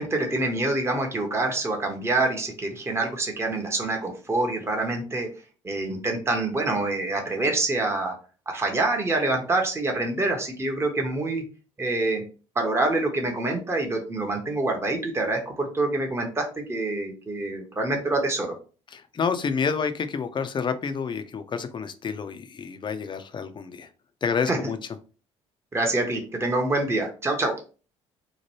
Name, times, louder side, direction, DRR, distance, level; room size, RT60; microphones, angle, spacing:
voice 1, 0.0-5.3 5.6-8.1 8.5-11.4 11.8-12.2 12.6-18.5 24.5-24.6 25.7-27.5, right 2 dB, 15° right, 2 dB, 0.8 m, -26 dB
voice 2, 18.9-23.9 24.2-24.8, left 6 dB, 30° left, 10 dB, 0.5 m, -29 dB
2.9 x 2.2 x 3.0 m, 0.36 s
hypercardioid pair, 55°, 16 cm